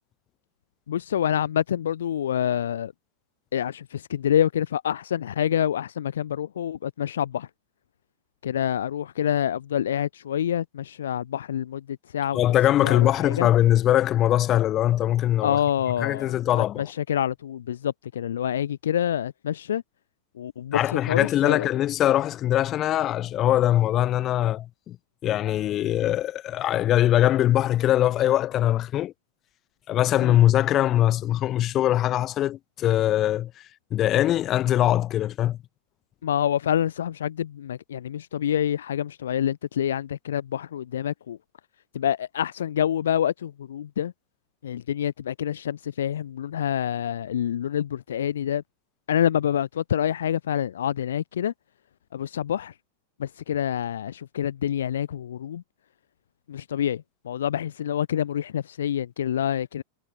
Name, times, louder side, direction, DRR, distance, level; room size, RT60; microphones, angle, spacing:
voice 1, 0.9-2.9 3.5-7.5 8.4-12.4 12.8-13.5 15.4-19.8 20.4-21.7 30.2-30.4 36.2-41.4 41.9-44.1 44.6-48.6 49.1-51.5 52.1-52.7 53.2-55.6 56.5-59.8, left 10 dB, 65° left, 0.6 m, -27 dB
voice 2, 12.3-15.6 16.0-16.9 20.7-25.0 25.2-29.1 29.9-33.5 33.9-35.6, left 12 dB, 30° left, 1.3 m, -22 dB
figure-of-eight pair, 90°, 0 cm